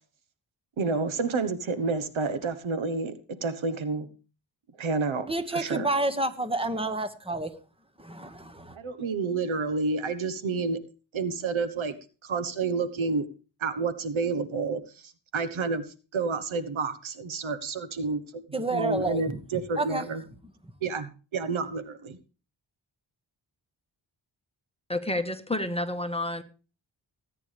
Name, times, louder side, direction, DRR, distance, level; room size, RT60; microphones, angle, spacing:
voice 1, 0.8-4.1 4.8-5.9 8.7-10.8 11.1-12.0 12.2-13.3 13.6-15.8 16.1-18.4 18.7-20.2 20.8-22.2, right 4 dB, 85° right, 1.2 m, -29 dB
voice 2, 5.3-7.5 8.0-8.7 18.5-19.4 19.8-20.0, right 2 dB, 10° right, 1.6 m, -29 dB
voice 3, 24.9-26.4, left 1 dB, 10° left, 1.4 m, -29 dB
18.0 x 9.4 x 3.4 m
cardioid pair, 65°, 46 cm